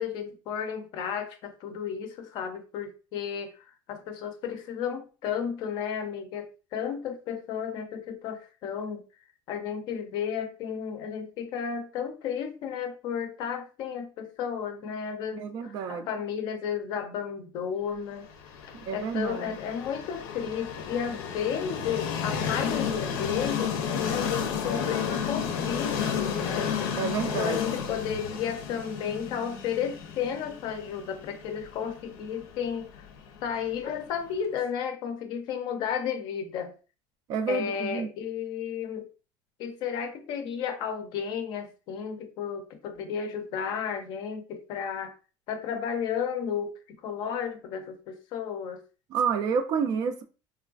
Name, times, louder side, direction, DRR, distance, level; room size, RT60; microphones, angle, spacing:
voice 1, 0.0-9.0 9.5-18.3 18.9-26.7 27.2-33.1 33.4-36.7 37.5-39.1 39.6-45.1 45.5-48.8, left 7 dB, 45° left, 0.5 m, -33 dB
voice 2, 15.4-16.1 18.9-19.6 26.9-27.6 37.3-38.1 49.1-50.2, right 6 dB, 40° right, 0.3 m, -29 dB
Train, 18.4-34.3, left 7 dB, 90° left, 0.6 m, -32 dB
3.1 x 2.3 x 2.4 m
cardioid pair, 170°, 10 cm